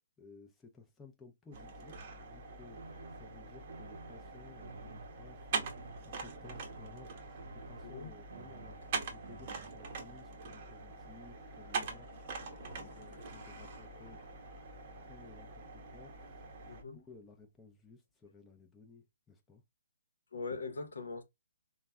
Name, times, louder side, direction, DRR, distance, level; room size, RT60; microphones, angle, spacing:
voice 1, 0.2-14.2 14.7-19.6, left 3 dB, 10° left, 0.5 m, -57 dB
sound 1, 1.5-16.8, right 4 dB, 40° right, 0.7 m, -44 dB
sound 2, 2.8-10.1, right 3 dB, 90° right, 0.7 m, -53 dB
sound 3, 10.8-17.7 18.1-18.2, left 3 dB, 35° left, 0.9 m, -61 dB
voice 2, 20.3-21.2, left 4 dB, 85° left, 0.7 m, -41 dB
3.2 x 2.1 x 2.3 m
hypercardioid pair, 155°, 0 cm